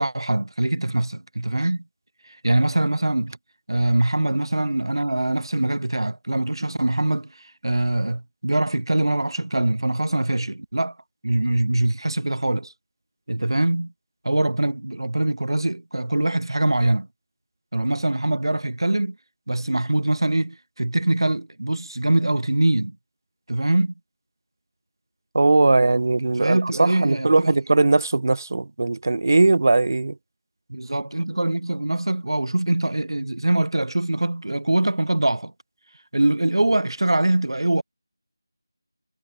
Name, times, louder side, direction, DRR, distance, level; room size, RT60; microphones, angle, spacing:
voice 1, 0.0-1.8 2.2-3.3 3.7-11.0 11.2-12.7 13.3-13.9 14.2-17.1 17.7-19.2 19.5-23.0 23.5-23.9 26.4-27.5 30.7-35.5 36.1-37.8, right 2 dB, 75° right, 3.6 m, -23 dB
voice 2, 25.3-30.2, right 3 dB, 45° right, 0.7 m, -19 dB
figure-of-eight pair, 175°, 2 cm